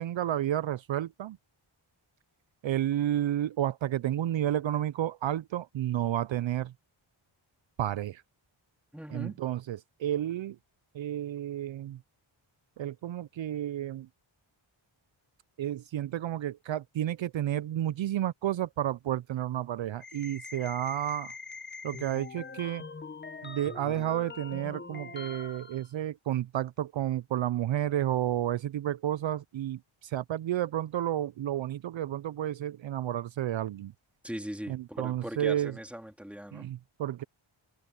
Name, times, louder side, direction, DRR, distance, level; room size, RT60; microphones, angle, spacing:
voice 1, 0.0-1.4 2.6-6.7 7.8-8.2 9.1-10.6 10.9-12.0 12.8-14.1 15.6-21.3 21.8-22.8 23.4-33.9 34.7-35.8 36.5-37.2, right 12 dB, 70° right, 0.5 m, -31 dB
voice 2, 8.9-9.4 34.2-36.7, equal, 5° right, 2.9 m, -40 dB
sound 1, 20.0-25.9, left 4 dB, 20° left, 0.7 m, -43 dB
wide cardioid pair, 90°, 48 cm